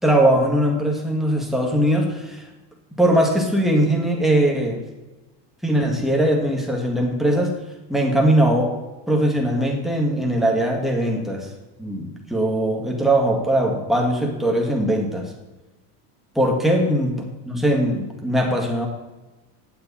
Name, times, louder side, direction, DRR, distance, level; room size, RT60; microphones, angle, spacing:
voice 1, 0.0-2.5 3.0-4.8 5.6-7.6 7.9-8.7 9.1-11.5 11.8-15.3 16.4-17.2 17.5-18.9, right 1 dB, ahead, -1 dB, 1.9 m, -20 dB
10.0 x 7.7 x 4.2 m, 1.1 s
supercardioid pair, 125°, 47 cm